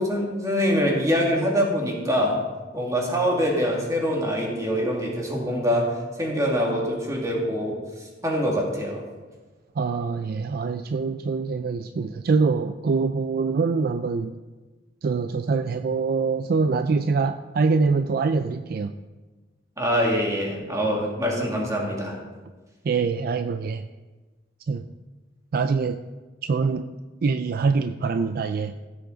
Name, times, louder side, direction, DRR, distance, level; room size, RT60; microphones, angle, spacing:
voice 1, 0.0-2.4 2.7-5.9 6.2-7.8 8.2-9.0 19.8-22.2, equal, 20° right, -2 dB, 2.2 m, -24 dB
voice 2, 9.8-14.3 15.0-18.9 22.8-23.8 24.7-24.8 25.5-26.0 26.4-26.9 27.2-28.7, right 4 dB, 55° right, 10 dB, 0.4 m, -24 dB
16.0 x 7.2 x 3.9 m, 1.3 s
head